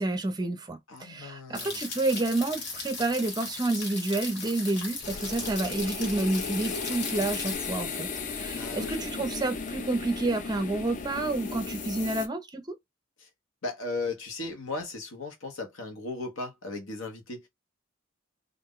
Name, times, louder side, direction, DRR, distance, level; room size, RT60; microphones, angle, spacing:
voice 1, 0.0-12.8, right 2 dB, 20° right, 0.5 m, -29 dB
voice 2, 0.9-2.0 8.5-9.3 13.2-13.3 13.6-17.5, left 3 dB, 85° left, 0.9 m, -37 dB
sound 1, 1.5-7.6, left 3 dB, 55° left, 1.0 m, -38 dB
sound 2, 5.0-12.3, left 4 dB, 40° left, 0.4 m, -35 dB
2.4 x 2.1 x 3.7 m
head